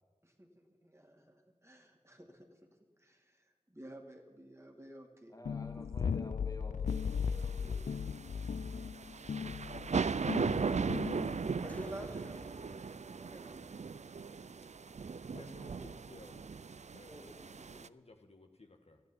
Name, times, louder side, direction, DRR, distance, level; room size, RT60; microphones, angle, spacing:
voice 1, 0.2-2.5 3.0-6.0 7.5-8.3 11.6-12.6 13.1-13.8 17.1-17.7, equal, 20° right, 3 dB, 2.3 m, -52 dB
voice 2, 5.3-7.5, left 1 dB, 25° left, 3 dB, 2.7 m, -50 dB
sound 1, 5.5-11.6, left 6 dB, 90° left, 0.4 m, -37 dB
sound 2, 6.9-17.9, right 5 dB, 65° right, 0.4 m, -38 dB
sound 3, 11.7-16.5, left 1 dB, 10° left, 0.8 m, -57 dB
voice 3, 15.3-16.5 16.9-19.0, left 2 dB, 55° left, 4 dB, 1.5 m, -56 dB
13.0 x 10.5 x 9.7 m, 1.3 s
wide cardioid pair, 50°, 13 cm